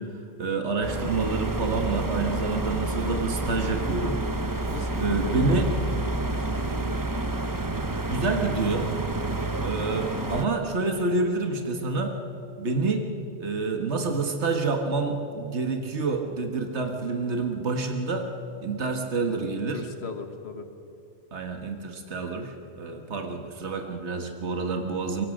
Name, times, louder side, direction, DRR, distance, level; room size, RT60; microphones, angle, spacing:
voice 1, 0.0-4.7 5.0-5.7 8.1-8.9 9.6-12.2 12.6-13.1 13.4-18.3 18.6-19.8 21.3-25.3, right 3 dB, 75° right, 4 dB, 1.8 m, -28 dB
sound 1, 0.8-10.5, right 2 dB, 20° right, 0.9 m, -29 dB
voice 2, 4.7-7.1 19.6-20.7, left 5 dB, 70° left, 6 dB, 1.9 m, -39 dB
25.0 x 23.0 x 6.5 m, 2.5 s
omnidirectional pair, 1.2 m